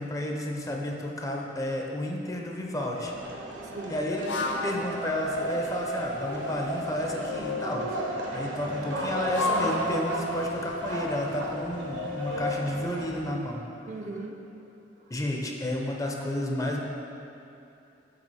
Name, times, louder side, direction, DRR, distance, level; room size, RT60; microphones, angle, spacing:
voice 1, 0.0-3.1 3.9-4.2 4.6-13.6 15.1-16.8, left 1 dB, 20° left, 0 dB, 0.6 m, -31 dB
sound 1, 2.9-13.2, right 1 dB, 80° right, 1.1 m, -36 dB
voice 2, 3.4-4.1 13.9-14.6 15.0-15.2, right 2 dB, 40° right, 3 dB, 0.4 m, -41 dB
pvc fujara samples, 4.1-7.6 8.9-12.6, left 1 dB, 75° left, 0.6 m, -33 dB
7.7 x 5.1 x 4.1 m, 2.8 s
head